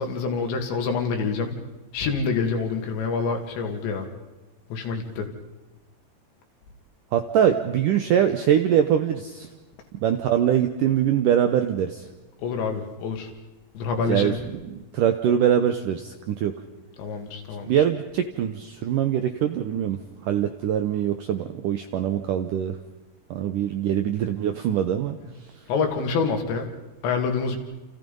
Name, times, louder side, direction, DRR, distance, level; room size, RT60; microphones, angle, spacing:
voice 1, 0.0-1.5 1.9-4.1 4.7-5.3 12.4-13.3 13.7-14.4 17.0-17.7 25.7-26.7 27.0-27.6, left 5 dB, 80° left, 4 dB, 4.7 m, -26 dB
voice 2, 7.1-9.5 9.9-12.0 14.1-14.3 14.7-16.5 17.6-22.8 23.3-25.2, right 9 dB, 75° right, 7 dB, 1.9 m, -23 dB
28.5 x 28.5 x 5.4 m, 1.1 s
omnidirectional pair, 5.1 m